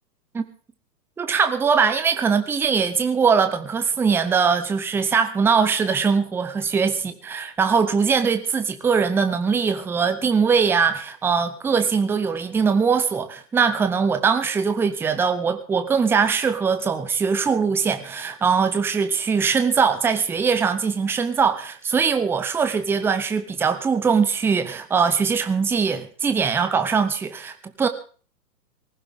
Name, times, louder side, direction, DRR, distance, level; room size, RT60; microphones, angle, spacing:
voice 1, 1.2-27.9, right 5 dB, 5° right, 0.7 m, -21 dB
19.5 x 15.5 x 3.6 m
figure-of-eight pair, 120°, 49 cm